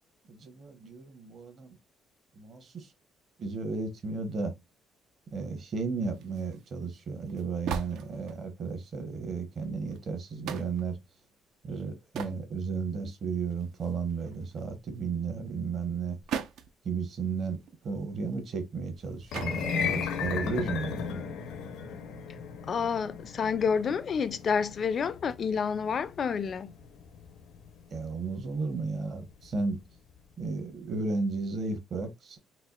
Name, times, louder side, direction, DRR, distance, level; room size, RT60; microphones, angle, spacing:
voice 1, 0.3-1.8 2.4-2.9 3.4-4.5 5.3-11.0 11.6-16.2 16.8-21.3 27.9-29.8 30.4-32.4, right 4 dB, 40° right, 0.9 m, -34 dB
sound 1, 6.0-8.7 9.2-9.3 9.7-10.0 10.5-10.9 11.7-12.4 12.9-13.0 13.4-15.0 15.8-16.8 17.1-17.2 17.4-19.0 19.3-19.6 20.6-21.0, right 8 dB, 75° right, 0.5 m, -40 dB
sound 2, 19.2-29.5, left 6 dB, 90° left, 0.7 m, -36 dB
voice 2, 22.7-26.7, left 6 dB, 40° left, 0.3 m, -29 dB
4.2 x 2.4 x 2.3 m
cardioid pair, 145°, 0 cm